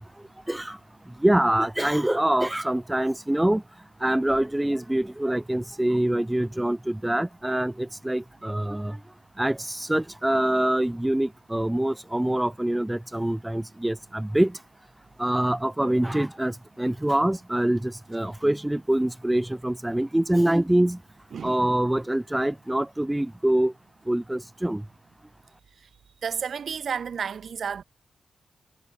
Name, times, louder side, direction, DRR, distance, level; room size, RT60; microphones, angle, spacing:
voice 1, 0.5-0.8 1.2-3.6 4.0-9.0 9.4-14.6 15.2-21.0 21.4-23.7 24.1-24.8, right 1 dB, 10° right, 4.1 m, -25 dB
voice 2, 21.3-21.7 26.2-27.8, right 7 dB, 65° right, 7.3 m, -31 dB
wide cardioid pair, 125°, 0 cm